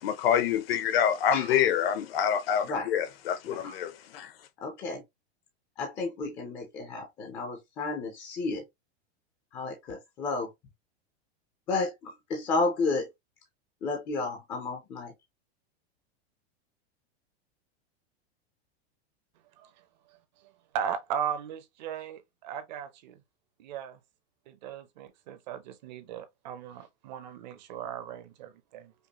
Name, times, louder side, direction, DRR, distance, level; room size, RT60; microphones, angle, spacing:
voice 1, 0.0-4.3, left 9 dB, 65° left, 0.8 m, -26 dB
voice 2, 3.4-3.8 4.6-5.0 5.8-8.6 9.5-10.5 11.7-13.1 13.8-15.1, left 3 dB, 10° left, 0.4 m, -32 dB
voice 3, 19.6-23.2 23.6-24.0 24.5-28.9, right 8 dB, 45° right, 0.6 m, -37 dB
5.2 x 2.0 x 2.8 m
supercardioid pair, 175°, 32 cm